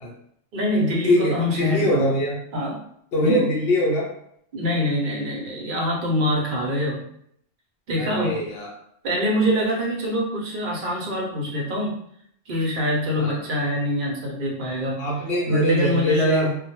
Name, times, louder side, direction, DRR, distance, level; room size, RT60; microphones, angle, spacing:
voice 1, 0.5-2.1 2.5-2.8 3.2-3.5 4.5-7.1 7.9-8.4 9.0-12.0 12.5-15.0 15.5-16.6, equal, 55° right, -1 dB, 0.7 m, -24 dB
voice 2, 1.0-2.4 3.1-4.1 8.0-8.7 13.2-13.4 15.0-16.5, equal, 60° left, -3 dB, 0.7 m, -23 dB
2.1 x 2.1 x 2.9 m, 0.70 s
omnidirectional pair, 1.3 m